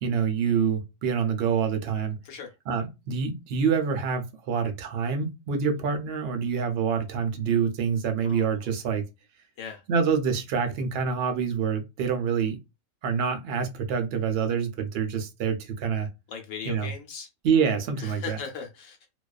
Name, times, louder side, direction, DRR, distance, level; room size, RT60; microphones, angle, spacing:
voice 1, 0.0-2.2 2.7-9.0 9.9-12.6 13.0-16.1 16.7-16.9 17.4-18.4, right 6 dB, 60° right, 0.6 m, -26 dB
voice 2, 8.2-8.7 9.6-9.8 16.3-17.3 18.0-19.1, left 6 dB, 70° left, 0.9 m, -38 dB
2.4 x 2.2 x 2.3 m
omnidirectional pair, 1.5 m